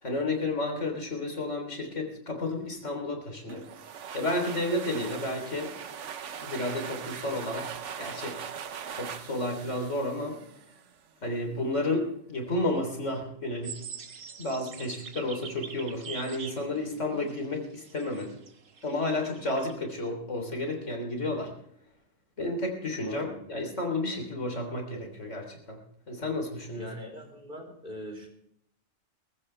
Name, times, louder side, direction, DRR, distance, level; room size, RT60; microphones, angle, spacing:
voice 1, 0.0-3.6 4.1-5.7 6.4-8.4 8.9-10.4 11.2-13.8 14.4-18.3 18.8-21.5 22.4-25.8 26.1-26.9, left 2 dB, 70° left, 3 dB, 3.8 m, -31 dB
sound 1, 3.5-11.0, right 7 dB, 70° right, 1.2 m, -40 dB
sound 2, 13.6-19.8, right 6 dB, 90° right, 1.6 m, -45 dB
voice 2, 23.0-23.4 26.7-28.3, equal, 40° right, 2 dB, 4.3 m, -42 dB
21.0 x 15.0 x 3.3 m, 0.73 s
omnidirectional pair, 1.3 m